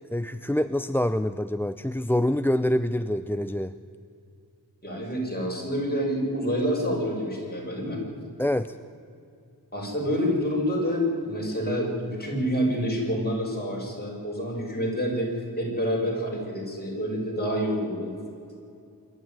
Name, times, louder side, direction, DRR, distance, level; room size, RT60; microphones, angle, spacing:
voice 1, 0.1-3.7 8.4-8.8, left 1 dB, 5° left, 13 dB, 0.4 m, -26 dB
voice 2, 4.8-8.0 9.7-15.3 15.6-18.1, equal, 25° left, -2 dB, 6.8 m, -27 dB
26.0 x 12.0 x 9.5 m, 2.6 s
wide cardioid pair, 85°, 39 cm